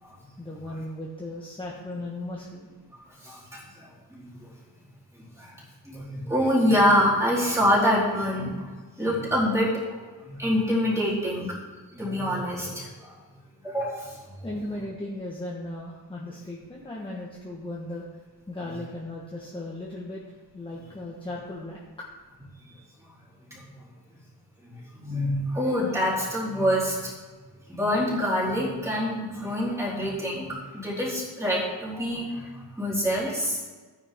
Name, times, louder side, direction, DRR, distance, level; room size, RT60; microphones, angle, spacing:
voice 1, 0.4-2.7 14.4-18.0 18.5-20.2 20.5-21.8, left 1 dB, 15° left, -3 dB, 1.2 m, -36 dB
voice 2, 3.2-4.2 5.4-5.5 5.9-8.7 9.0-10.0 10.2-11.5 11.9-13.1 13.6-14.1 14.4-14.5 23.5-23.6 25.0-27.1 27.7-33.6, equal, 10° right, -6 dB, 3.4 m, -26 dB
13.5 x 9.6 x 3.6 m, 1.3 s
wide cardioid pair, 175°, 37 cm